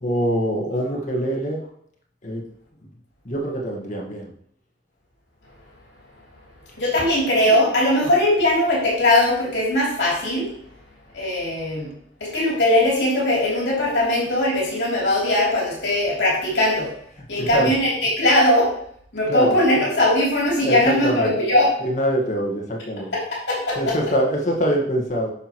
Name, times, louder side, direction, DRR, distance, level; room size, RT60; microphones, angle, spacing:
voice 1, 0.0-1.6 2.2-2.4 3.2-4.3 17.3-17.7 19.3-19.6 20.6-21.3 21.8-23.1 23.8-25.3, equal, 40° left, 0 dB, 1.7 m, -24 dB
voice 2, 6.8-10.5 11.1-11.9 12.2-16.9 17.3-18.7 19.1-21.7 23.5-24.0, left 1 dB, 65° left, -5 dB, 3.2 m, -20 dB
9.7 x 6.0 x 3.1 m, 0.66 s
head